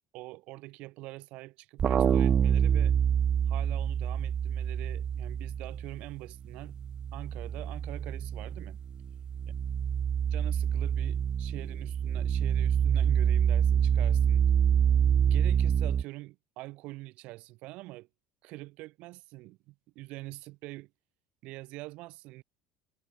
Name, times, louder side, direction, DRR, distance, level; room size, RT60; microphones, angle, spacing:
voice 1, 0.1-3.0 3.5-6.8 7.1-8.8 10.3-14.4 15.1-18.1 18.4-20.9 21.4-22.4, right 20 dB, 60° right, 6.5 m, -44 dB
sound 1, 1.8-6.2 6.5-16.0, right 8 dB, 40° right, 0.5 m, -27 dB
figure-of-eight pair, 65°, 2 cm